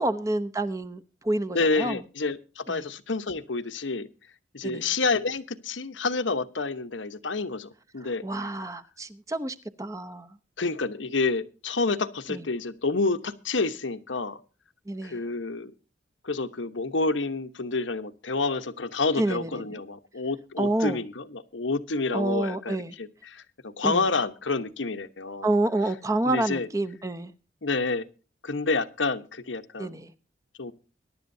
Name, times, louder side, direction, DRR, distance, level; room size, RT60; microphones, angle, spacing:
voice 1, 0.0-2.0 2.7-2.9 4.6-4.9 8.2-10.4 12.3-12.4 14.9-15.2 19.2-19.8 20.6-21.0 22.1-22.9 23.8-24.1 25.4-27.3 29.8-30.1, right 2 dB, 15° right, 11 dB, 0.8 m, -28 dB
voice 2, 1.5-4.1 4.5-8.2 10.6-14.4 15.0-15.7 16.2-25.5 26.2-26.7 27.6-28.0 28.4-29.9 30.6-30.7, left 3 dB, 90° left, 10 dB, 1.1 m, -29 dB
22.5 x 11.5 x 2.7 m, 0.34 s
head